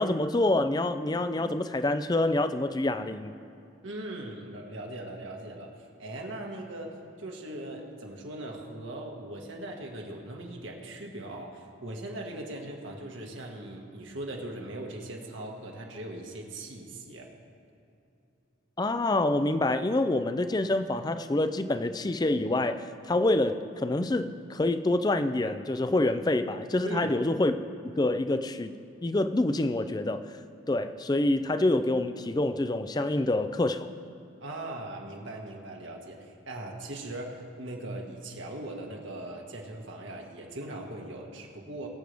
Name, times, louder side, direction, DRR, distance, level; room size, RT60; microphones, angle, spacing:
voice 1, 0.0-3.3 18.8-27.5 27.8-30.3 30.7-33.9, left 2 dB, 20° left, 10 dB, 0.4 m, -27 dB
voice 2, 3.8-5.7 6.0-17.3 26.8-27.1 34.4-41.9, right 1 dB, 70° right, 0 dB, 1.8 m, -40 dB
22.0 x 7.7 x 3.5 m, 2.8 s
head